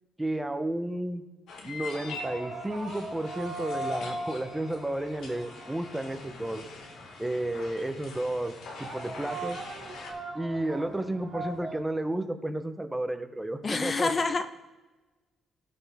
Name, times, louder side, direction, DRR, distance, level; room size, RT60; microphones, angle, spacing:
voice 1, 0.2-1.2 1.6-6.6 7.2-9.6 10.3-14.1, right 1 dB, 10° right, 8 dB, 0.9 m, -32 dB
sound 1, 1.5-10.1, left 4 dB, 75° left, 1.8 m, -44 dB
sound 2, 1.9-11.8, right 2 dB, 40° right, 3.2 m, -40 dB
voice 2, 13.6-14.4, left 4 dB, 35° left, 10 dB, 0.5 m, -27 dB
16.5 x 5.8 x 3.6 m, 1.2 s
cardioid pair, 90°, 0 cm